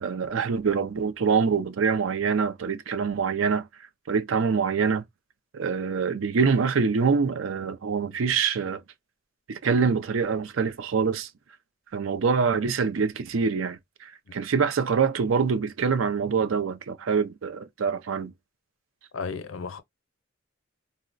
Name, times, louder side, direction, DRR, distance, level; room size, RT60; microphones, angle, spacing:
voice 1, 0.0-3.7 4.1-5.0 5.5-8.8 9.5-11.3 11.9-18.3, right 5 dB, 85° right, 0.5 m, -25 dB
voice 2, 19.1-19.8, left 5 dB, 80° left, 0.5 m, -33 dB
3.8 x 2.1 x 2.5 m
head